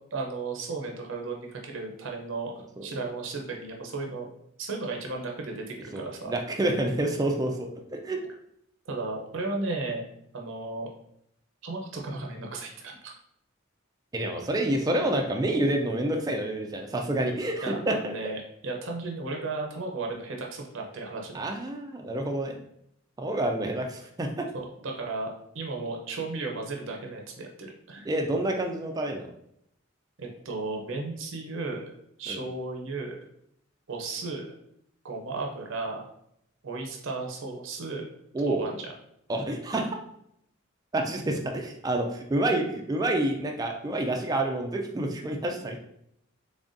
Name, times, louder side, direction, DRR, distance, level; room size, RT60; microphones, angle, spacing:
voice 1, 0.1-4.3 4.6-6.3 8.9-10.1 10.3-10.9 11.6-13.1 17.6-21.4 24.5-28.1 30.2-31.9 32.2-33.2 33.9-34.5 35.0-36.1 36.6-38.0 38.4-38.9, right 3 dB, 65° right, 1 dB, 0.6 m, -34 dB
voice 2, 5.9-8.2 14.1-18.1 21.3-22.6 23.2-24.5 28.1-29.3 32.3-32.4 38.3-38.6 39.3-39.9 40.9-45.8, right 1 dB, 20° right, 2 dB, 0.3 m, -28 dB
3.8 x 3.3 x 2.5 m, 0.75 s
head